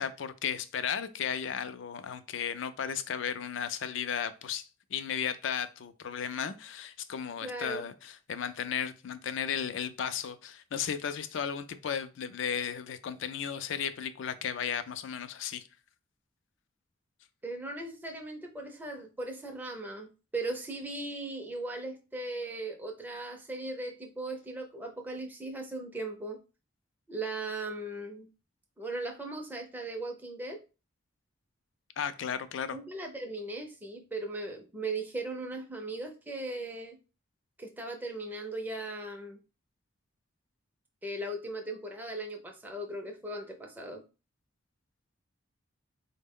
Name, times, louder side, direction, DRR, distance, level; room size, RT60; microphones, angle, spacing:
voice 1, 0.0-15.6 32.0-32.8, left 7 dB, 65° left, 0.4 m, -35 dB
voice 2, 7.4-7.9 17.4-26.4 27.1-28.3 28.8-30.6 32.7-37.0 37.6-39.4 41.0-44.0, right 2 dB, 10° right, 0.5 m, -38 dB
4.2 x 2.1 x 3.6 m
head